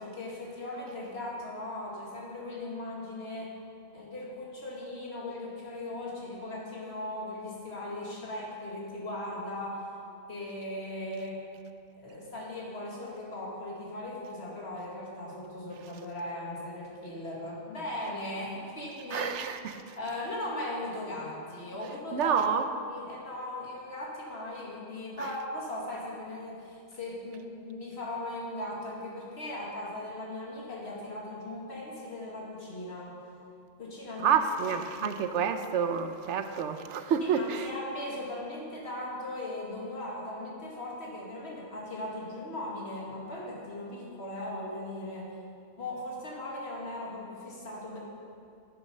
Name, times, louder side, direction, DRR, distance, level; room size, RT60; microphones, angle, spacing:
voice 1, 0.0-3.5 3.9-9.8 10.3-11.4 12.0-19.3 20.0-22.5 22.9-33.2 33.8-34.4 34.7-35.4 37.2-45.3 45.8-48.0, left 1 dB, 65° left, 2.1 m, -38 dB
voice 2, 19.1-20.0 22.1-22.6 25.2-25.3 34.2-37.7, right 7 dB, 80° right, 1.0 m, -29 dB
10.0 x 7.1 x 5.4 m
omnidirectional pair, 1.2 m